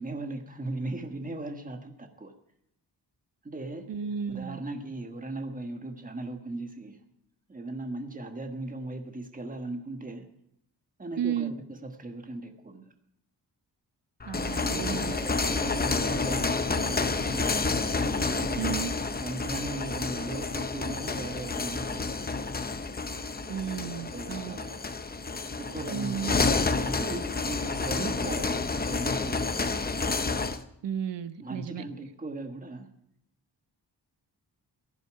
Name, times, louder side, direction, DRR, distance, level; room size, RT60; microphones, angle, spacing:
voice 1, 0.0-2.3 3.4-3.9 4.3-7.0 7.5-10.3 11.0-12.9 14.6-17.6 18.0-22.4 24.1-25.0 25.6-29.6 31.4-32.9, right 2 dB, 20° right, 5 dB, 1.4 m, -38 dB
voice 2, 3.9-4.6 11.2-11.5 14.2-15.2 18.6-18.9 23.5-24.6 25.9-26.3 30.8-31.8, right 8 dB, 85° right, 12 dB, 1.0 m, -33 dB
sound 1, 14.2-30.6, left 3 dB, 20° left, 0.7 m, -29 dB
16.0 x 11.0 x 4.7 m, 0.76 s
wide cardioid pair, 150°, 42 cm